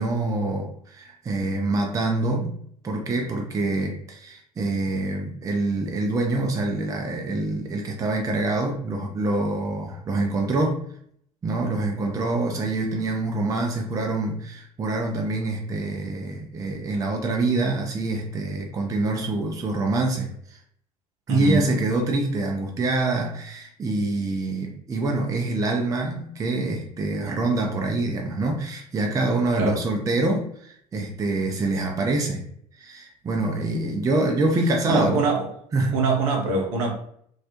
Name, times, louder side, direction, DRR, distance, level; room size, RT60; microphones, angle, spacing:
voice 1, 0.0-2.5 2.8-10.8 11.4-20.3 21.3-32.4 32.8-35.2 35.7-36.0, right 2 dB, 20° right, 2 dB, 0.4 m, -25 dB
voice 2, 21.3-21.7 29.6-29.8 34.9-35.5 35.9-36.9, right 4 dB, 60° right, 0 dB, 0.6 m, -23 dB
2.3 x 2.0 x 2.8 m, 0.66 s
figure-of-eight pair, 60°, 19 cm